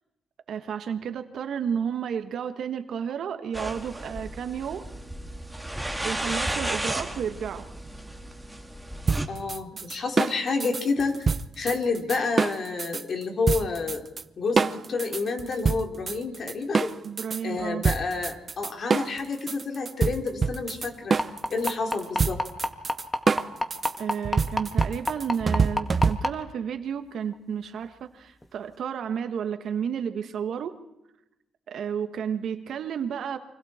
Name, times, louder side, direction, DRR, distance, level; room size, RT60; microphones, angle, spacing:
voice 1, 0.5-4.9 6.0-7.7 17.0-17.8 24.0-30.8 31.7-33.4, right 7 dB, 70° right, 8 dB, 1.6 m, -32 dB
sound 1, 3.5-9.3, right 1 dB, 5° right, 2.4 m, -33 dB
sound 2, 9.1-13.0 13.5-14.2 14.6-17.4 17.8-26.5, right 5 dB, 40° right, 0.7 m, -26 dB
voice 2, 9.3-11.2 11.6-14.0 14.4-16.9 17.4-21.2 21.5-22.4, left 4 dB, 55° left, 3 dB, 3.7 m, -29 dB
sound 3, 21.2-26.3 27.3-27.4 27.8-27.9 28.4-28.5, left 1 dB, 15° left, 2.0 m, -25 dB
29.5 x 25.0 x 4.5 m, 0.94 s
cardioid pair, 75°, 0 cm